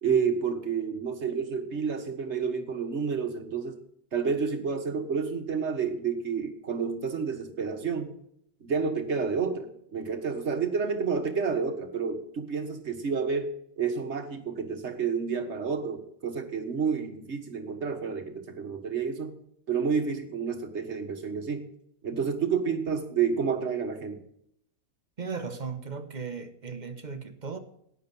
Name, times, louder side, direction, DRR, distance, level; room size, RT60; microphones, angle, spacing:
voice 1, 0.0-3.8 4.1-8.1 8.6-13.5 13.8-19.4 19.7-21.7 22.0-24.2, right 6 dB, 50° right, 6 dB, 1.7 m, -30 dB
voice 2, 25.2-27.6, right 5 dB, 30° right, 8 dB, 1.2 m, -36 dB
11.5 x 9.5 x 5.6 m, 0.73 s
omnidirectional pair, 1.6 m